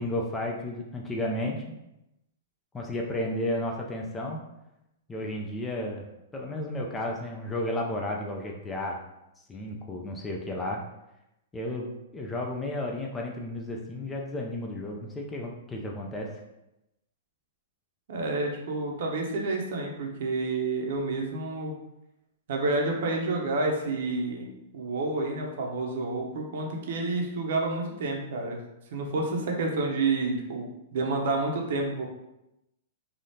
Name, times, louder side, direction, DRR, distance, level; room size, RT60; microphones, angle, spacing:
voice 1, 0.0-1.6 2.7-4.4 5.1-6.1 6.3-9.0 9.5-10.8 11.5-16.3, left 1 dB, 10° left, 0 dB, 0.3 m, -32 dB
voice 2, 18.1-21.7 22.5-24.5 24.7-28.6 28.9-32.1, right 3 dB, 60° right, 1 dB, 0.7 m, -29 dB
3.4 x 2.4 x 2.7 m, 0.90 s
hypercardioid pair, 160°, 0 cm